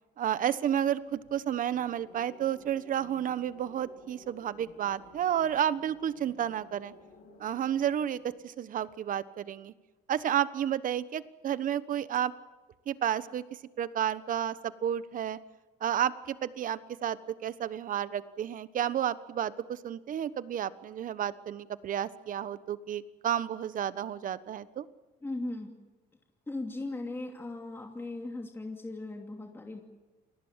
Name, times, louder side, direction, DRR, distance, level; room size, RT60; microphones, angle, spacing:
voice 1, 0.2-6.9 7.4-9.7 10.1-12.3 12.9-13.4 13.8-15.4 15.8-24.8, right 10 dB, 50° right, 15 dB, 1.2 m, -31 dB
sound 1, 0.8-8.4, left 3 dB, 85° left, 7.9 m, -56 dB
voice 2, 25.2-25.7 26.5-29.8, left 2 dB, 15° left, 2 dB, 2.8 m, -38 dB
29.0 x 19.5 x 7.5 m, 1.2 s
cardioid pair, 110°, 17 cm